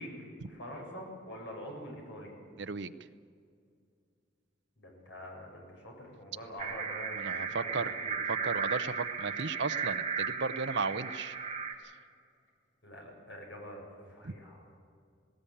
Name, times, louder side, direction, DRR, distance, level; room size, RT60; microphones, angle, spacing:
voice 1, 0.0-2.3 4.8-7.2 7.5-8.2 12.8-14.6, equal, 70° left, 0 dB, 7.1 m, -45 dB
voice 2, 2.6-2.9 7.1-7.8 8.3-11.4 14.2-14.3, right 4 dB, 65° right, 12 dB, 0.7 m, -35 dB
sound 1, 6.6-11.7, right 6 dB, 30° right, 1.6 m, -35 dB
19.0 x 18.0 x 8.7 m, 2.3 s
head